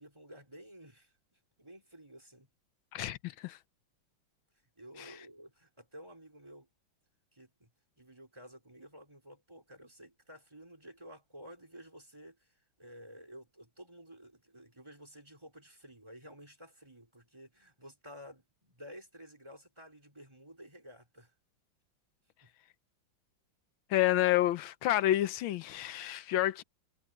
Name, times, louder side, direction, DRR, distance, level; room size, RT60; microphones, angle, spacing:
voice 1, 0.0-2.5 4.8-6.7 7.3-7.7 8.0-21.3 22.4-22.5, equal, 15° right, 4.4 m, -53 dB
voice 2, 2.9-3.6 5.0-5.1 23.9-26.6, left 14 dB, 85° left, 1.5 m, -29 dB
omnidirectional pair, 2.1 m